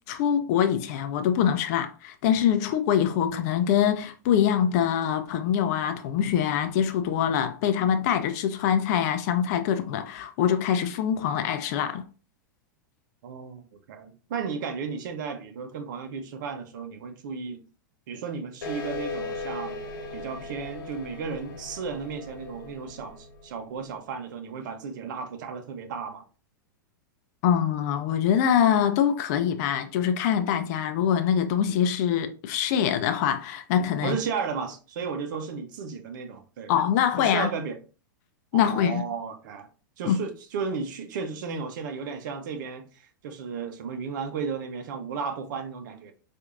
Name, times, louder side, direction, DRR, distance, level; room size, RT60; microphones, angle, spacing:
voice 1, 0.1-12.0 27.4-34.2 36.7-37.5 38.5-39.0 40.0-40.2, left 9 dB, 55° left, 0.5 m, -24 dB
voice 2, 13.2-17.6 18.1-19.8 20.1-26.2 34.0-36.7 37.2-37.8 38.5-39.7 40.0-46.1, right 5 dB, 65° right, 0.8 m, -34 dB
sound 1, 18.6-23.7, left 2 dB, 75° left, 1.1 m, -37 dB
4.5 x 2.6 x 2.4 m
hypercardioid pair, 120°, 11 cm